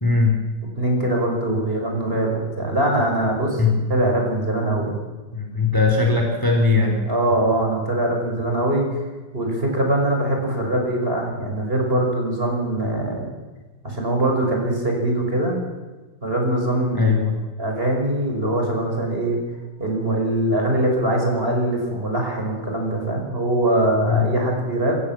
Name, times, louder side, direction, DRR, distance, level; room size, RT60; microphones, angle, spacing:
voice 1, 0.0-0.4 3.6-3.8 5.3-7.0 16.9-17.3 24.0-24.3, left 4 dB, 10° left, 2 dB, 3.2 m, -19 dB
voice 2, 0.8-5.0 6.1-6.2 7.1-8.9 9.3-13.3 13.8-15.6 16.2-17.2 17.6-19.4 19.8-25.0, right 1 dB, 35° right, 1 dB, 5.9 m, -22 dB
27.0 x 15.5 x 7.5 m, 1.3 s
omnidirectional pair, 1.7 m